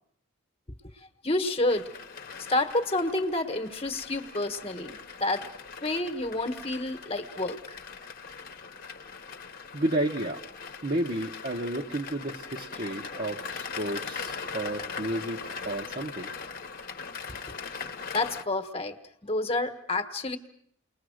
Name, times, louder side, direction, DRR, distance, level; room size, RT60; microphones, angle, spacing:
voice 1, 1.2-1.9 2.5-5.5 5.8-7.8 18.1-19.0 19.2-20.4, left 2 dB, 30° left, 6 dB, 1.3 m, -29 dB
sound 1, 1.7-18.4, left 5 dB, 45° left, 1.1 m, -40 dB
voice 2, 9.7-10.4 10.8-16.3, right 1 dB, 45° right, 0 dB, 1.1 m, -32 dB
29.5 x 21.0 x 6.4 m, 0.71 s
head